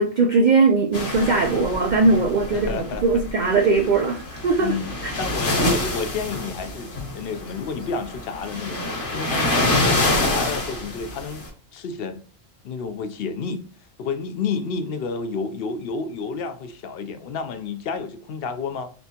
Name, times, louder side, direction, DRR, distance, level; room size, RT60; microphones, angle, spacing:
voice 1, 0.0-4.7 5.0-5.1, right 3 dB, 80° right, 0.4 m, -20 dB
sound 1, 0.9-11.5, left 2 dB, 45° left, 1.2 m, -27 dB
voice 2, 2.5-3.0 4.6-4.9 5.2-11.4 11.7-12.2 12.6-13.6 14.0-18.9, left 4 dB, 65° left, 0.6 m, -30 dB
4.3 x 3.3 x 2.8 m
omnidirectional pair, 1.3 m